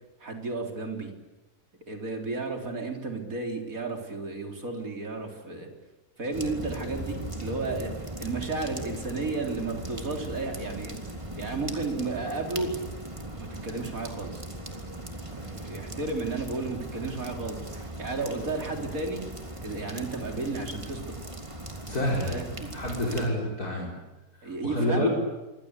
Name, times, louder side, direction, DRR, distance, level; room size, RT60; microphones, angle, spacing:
voice 1, 0.2-1.1 1.9-5.7 6.2-7.9 8.2-10.9 11.4-12.7 13.4-14.4 15.3-19.2 19.6-21.0 22.3-22.7 23.1-23.2 24.4-25.1, right 3 dB, 60° right, 3 dB, 4.3 m, -33 dB
sound 1, 6.3-23.3, right 1 dB, 20° right, 3.2 m, -39 dB
voice 2, 21.8-22.4 22.7-23.9 24.4-25.1, left 1 dB, 70° left, -3 dB, 5.1 m, -28 dB
27.5 x 23.5 x 8.4 m, 1.1 s
omnidirectional pair, 1.6 m